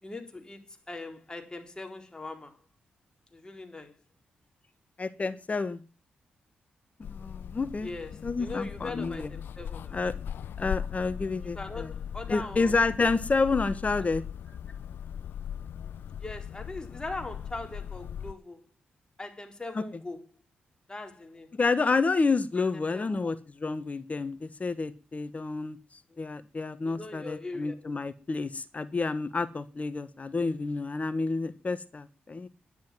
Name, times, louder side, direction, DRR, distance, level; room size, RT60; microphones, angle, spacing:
voice 1, 0.0-2.6 3.3-3.9 7.8-10.0 11.5-12.7 16.2-18.6 19.2-20.2 20.9-21.5 22.6-23.3 26.1-26.2 26.8-27.8, left 2 dB, 20° left, 4.2 m, -41 dB
voice 2, 5.0-5.8 7.0-7.9 8.2-9.3 9.9-10.1 10.6-11.9 12.3-14.2 19.7-19.8 21.5-25.8 26.2-32.5, left 4 dB, 40° left, 1.4 m, -29 dB
sound 1, 7.0-18.3, left 9 dB, 75° left, 0.6 m, -39 dB
11.0 x 10.5 x 7.5 m
supercardioid pair, 45°, 4 cm